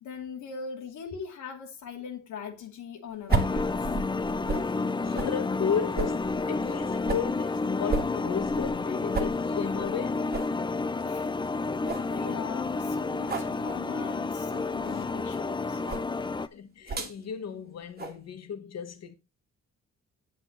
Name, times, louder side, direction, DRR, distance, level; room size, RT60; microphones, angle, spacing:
voice 1, 0.0-3.6 11.0-11.3 12.1-15.8, left 6 dB, 75° left, 2.5 m, -40 dB
sound 1, 3.3-16.5, left 3 dB, 15° left, 0.5 m, -30 dB
sound 2, 3.3-4.7 5.1-5.3 6.0-7.3 7.9-8.9 9.1-9.4 9.8-9.9 10.3-10.5 11.0-11.1 11.5-11.6 11.9-12.1 13.2-13.5 14.5-14.7 15.8-16.1 16.9-17.2 18.0-18.2, right 4 dB, 30° right, 1.8 m, -32 dB
voice 2, 5.0-10.3 14.9-15.0 16.5-19.2, left 7 dB, 60° left, 1.6 m, -34 dB
8.0 x 7.9 x 3.9 m
cardioid pair, 90°, 30 cm